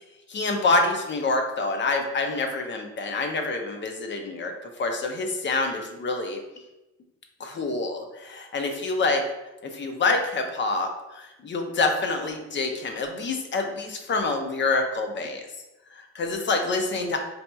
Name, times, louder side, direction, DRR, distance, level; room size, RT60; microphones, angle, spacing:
voice 1, 0.3-6.4 7.4-9.2 9.6-15.5 15.9-17.2, left 3 dB, 40° left, 4 dB, 0.6 m, -27 dB
4.1 x 2.8 x 2.2 m, 0.99 s
cardioid pair, 90°, 30 cm